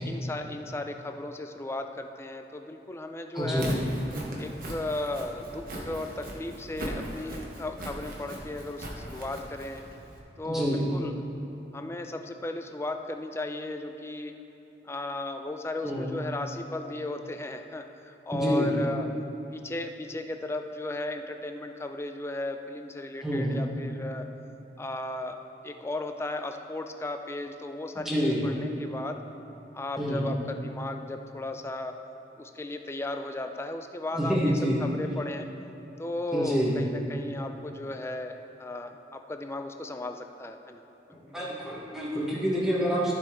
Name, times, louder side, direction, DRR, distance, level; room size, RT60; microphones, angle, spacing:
voice 1, 0.0-3.8 4.4-9.8 10.4-11.2 11.7-14.4 14.8-19.1 19.5-24.3 24.8-29.2 29.7-32.0 32.4-35.5 36.0-40.8, left 2 dB, 15° left, 6 dB, 0.4 m, -35 dB
voice 2, 3.3-3.7 10.4-10.9 15.8-16.1 18.3-18.8 23.2-23.6 28.0-28.5 30.0-30.3 34.1-34.8 36.3-36.8 41.1-43.1, equal, 5° right, -7 dB, 1.3 m, -27 dB
Walk footsteps, 3.4-10.2, right 1 dB, 55° right, 1.2 m, -39 dB
13.5 x 5.3 x 3.7 m, 3.0 s
head